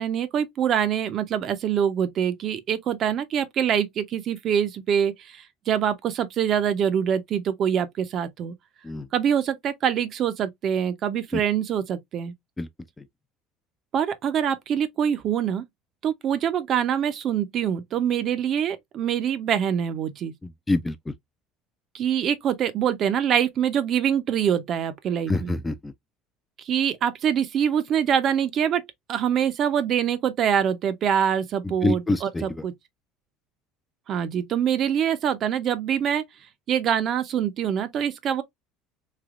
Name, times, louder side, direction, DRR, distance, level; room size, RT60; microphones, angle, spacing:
voice 1, 0.0-8.5 9.1-12.3 13.9-15.6 16.0-20.3 21.9-25.5 26.6-28.8 29.1-32.7 34.1-36.2 36.7-38.4, right 8 dB, 50° right, 0.7 m, -24 dB
voice 2, 20.4-21.1 25.3-25.9 31.6-32.6, left 2 dB, 15° left, 0.4 m, -26 dB
3.3 x 2.7 x 2.5 m
supercardioid pair, 100°, 0 cm